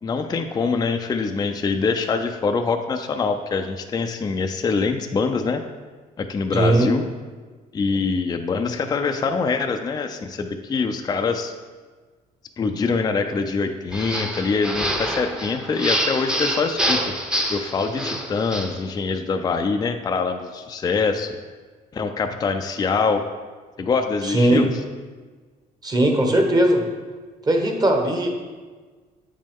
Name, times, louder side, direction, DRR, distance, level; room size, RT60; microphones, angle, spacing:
voice 1, 0.0-5.6 6.2-7.0 7.7-11.5 12.6-17.0 17.5-21.4 21.9-23.2 23.8-24.7, left 4 dB, 25° left, 5 dB, 0.4 m, -24 dB
voice 2, 6.5-6.9 24.2-24.7 25.8-26.8 27.4-28.3, right 1 dB, 25° right, 3 dB, 1.0 m, -19 dB
sound 1, 13.9-18.8, equal, 5° right, 0.7 m, -26 dB
7.9 x 5.3 x 3.6 m, 1.4 s
cardioid pair, 110°, 17 cm